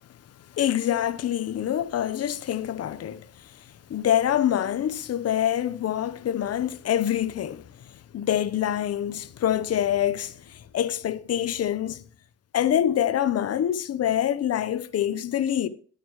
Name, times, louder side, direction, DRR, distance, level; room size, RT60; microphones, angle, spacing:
voice 1, 0.5-3.6 3.9-7.7 8.1-12.0 12.5-15.7, left 10 dB, 55° left, 0.8 m, -25 dB
11.5 x 9.4 x 3.1 m
cardioid pair, 90°, 30 cm